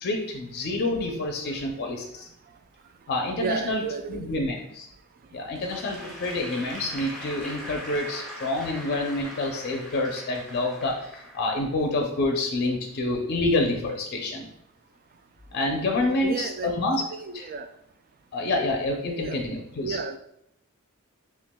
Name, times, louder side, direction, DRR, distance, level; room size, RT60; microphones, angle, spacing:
voice 1, 0.0-2.3 3.1-3.8 4.1-4.9 5.3-14.5 15.5-17.0 17.3-17.5 18.3-20.0, left 2 dB, 50° left, 2 dB, 0.5 m, -27 dB
voice 2, 3.4-4.5 16.2-16.7 17.1-17.7 19.2-19.4 19.8-20.2, right 5 dB, 45° right, 9 dB, 0.3 m, -32 dB
Applause / Crowd, 5.5-11.8, equal, ahead, 0.8 m, -41 dB
5.7 x 2.3 x 2.2 m, 0.75 s
head